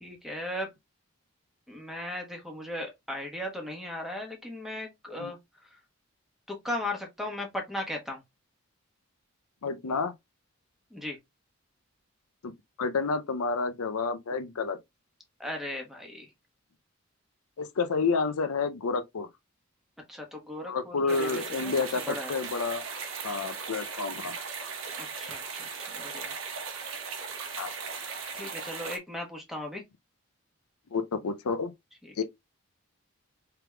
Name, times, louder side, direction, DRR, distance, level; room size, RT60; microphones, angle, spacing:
voice 1, 0.0-0.7 1.7-5.8 6.5-8.2 10.9-11.2 15.4-16.3 20.1-21.7 22.1-22.3 25.0-26.3 28.3-29.8 32.0-32.2, left 1 dB, ahead, 1.1 m, -37 dB
voice 2, 9.6-10.1 12.4-12.5 12.8-14.8 17.6-19.3 20.7-22.9 23.2-24.3 27.6-27.7 30.9-31.7 32.2-32.3, left 4 dB, 85° left, 0.6 m, -29 dB
sound 1, 21.1-29.0, right 5 dB, 70° right, 1.1 m, -38 dB
4.6 x 3.4 x 2.3 m
head